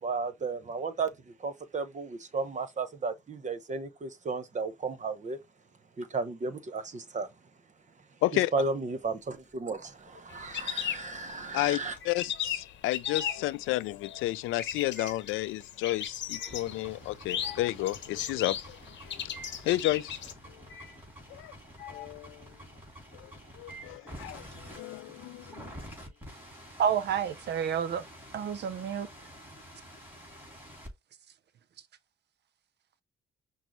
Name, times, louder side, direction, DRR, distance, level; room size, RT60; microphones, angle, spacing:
voice 1, 0.0-5.4 6.0-7.3 8.5-12.0, right 4 dB, 35° right, 1.0 m, -34 dB
sound 1, 9.0-9.7 10.0-24.5, left 3 dB, 5° left, 2.9 m, -50 dB
sound 2, 10.3-11.7 12.0-20.3, left 9 dB, 65° left, 0.9 m, -36 dB
voice 2, 12.0-18.8 19.0-19.3 19.6-20.1 20.5-20.6 21.3-21.5 21.9-22.5 23.1-25.7, left 16 dB, 90° left, 0.4 m, -32 dB
sound 3, 16.4-30.9, equal, 10° right, 2.6 m, -49 dB
voice 3, 26.8-28.1 28.3-29.1, right 8 dB, 60° right, 0.6 m, -29 dB
6.0 x 2.1 x 3.1 m
cardioid pair, 90°, 20 cm